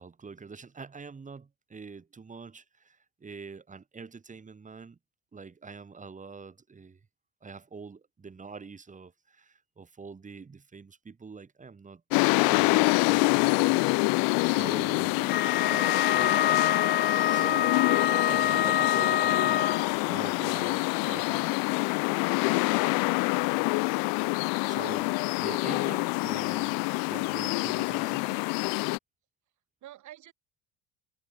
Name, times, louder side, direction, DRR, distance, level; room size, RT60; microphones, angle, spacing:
voice 1, 0.0-5.0 5.3-7.0 7.4-12.0 12.4-16.4 17.2-21.4 22.6-22.9 24.6-26.8 27.1-28.5, right 5 dB, 20° right, 4.3 m, -45 dB
sound 1, 12.1-29.0, left 32 dB, 85° left, 1.2 m, -26 dB
Wind instrument woodwind instrument, 15.3-20.0, left 10 dB, 30° left, 0.6 m, -26 dB
voice 2, 15.8-16.5 21.0-21.5 22.8-23.1 29.8-30.3, right 14 dB, 60° right, 7.9 m, -48 dB
cardioid pair, 120°, 34 cm